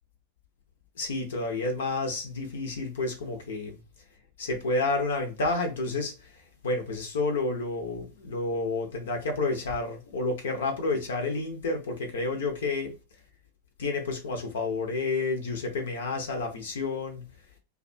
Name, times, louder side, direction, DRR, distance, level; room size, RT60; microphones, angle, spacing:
voice 1, 1.0-3.8 4.4-6.3 6.6-12.9 13.8-17.2, left 3 dB, 60° left, 0.6 m, -30 dB
2.4 x 2.3 x 2.5 m
figure-of-eight pair, 90°, 0 cm